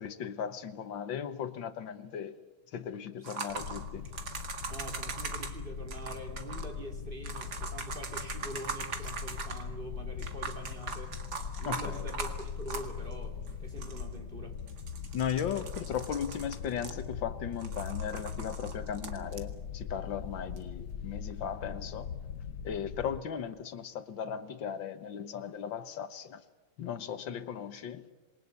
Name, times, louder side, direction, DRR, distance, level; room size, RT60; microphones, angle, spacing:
voice 1, 0.0-2.4 2.7-4.1 11.7-12.1 15.1-22.1 22.6-26.4 26.8-28.1, left 8 dB, 85° left, 1.9 m, -37 dB
sound 1, 3.2-5.5 5.9-6.7 7.2-9.7 10.2-13.1 13.5-13.6 13.8-14.1 14.7-17.3 17.6-19.4 20.6-20.7, right 5 dB, 60° right, 2.5 m, -41 dB
sound 2, 3.5-23.2, left 7 dB, 65° left, 1.6 m, -41 dB
voice 2, 4.7-11.2 11.6-14.6, right 1 dB, 25° right, 3.3 m, -44 dB
27.5 x 22.0 x 8.3 m
omnidirectional pair, 2.0 m